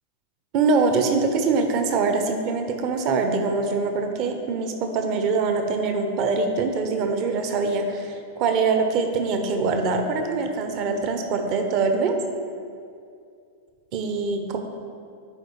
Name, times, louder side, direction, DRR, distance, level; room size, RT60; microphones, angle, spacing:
voice 1, 0.5-12.2 13.9-14.6, right 4 dB, 40° right, 5 dB, 0.8 m, -23 dB
11.0 x 4.8 x 3.1 m, 2.4 s
figure-of-eight pair, 95°, 0 cm